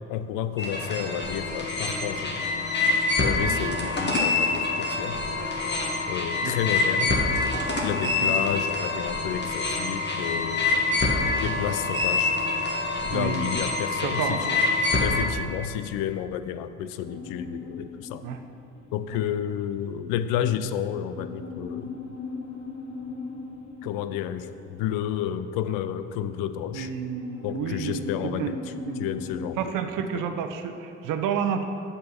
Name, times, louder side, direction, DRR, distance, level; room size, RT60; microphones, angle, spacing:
voice 1, 0.1-2.3 3.2-5.2 6.1-7.2 7.8-10.9 11.4-12.4 13.1-14.5 15.0-18.2 18.9-21.9 23.8-26.9 27.4-29.7 30.1-30.2, left 10 dB, 75° left, 12 dB, 0.5 m, -31 dB
sound 1, 0.6-15.2, left 3 dB, 30° left, 1.8 m, -26 dB
voice 2, 13.1-13.6 14.0-14.7 18.2-18.4 19.1-19.2 26.7-29.0 29.6-31.6, right 7 dB, 65° right, 8 dB, 0.8 m, -31 dB
sound 2, 17.0-29.6, left 4 dB, 50° left, 2.0 m, -40 dB
7.7 x 5.7 x 5.8 m, 2.8 s
hypercardioid pair, 50°, 35 cm